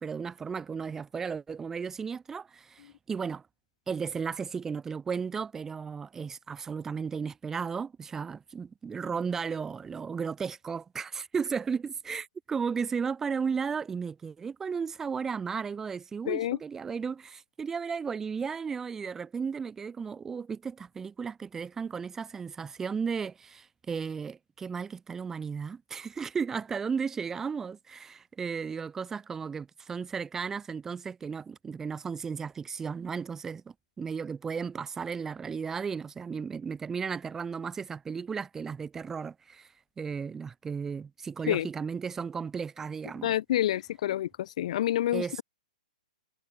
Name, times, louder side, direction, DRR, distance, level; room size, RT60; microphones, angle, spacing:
voice 1, 0.0-3.4 3.9-39.7 40.0-43.3 45.1-45.4, right 6 dB, 10° right, 1.4 m, -34 dB
voice 2, 16.3-16.6 41.5-41.7 43.2-45.4, left 12 dB, 50° left, 1.0 m, -28 dB
hypercardioid pair, 160°, 4 cm